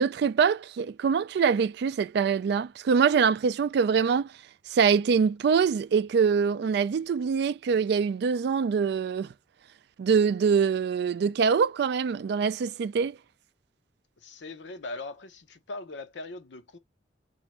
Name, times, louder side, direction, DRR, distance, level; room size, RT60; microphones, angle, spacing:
voice 1, 0.0-4.3 4.7-9.3 10.0-13.2, right 6 dB, 65° right, 0.3 m, -24 dB
voice 2, 14.2-16.8, left 2 dB, 80° left, 0.7 m, -40 dB
4.3 x 2.5 x 3.0 m
head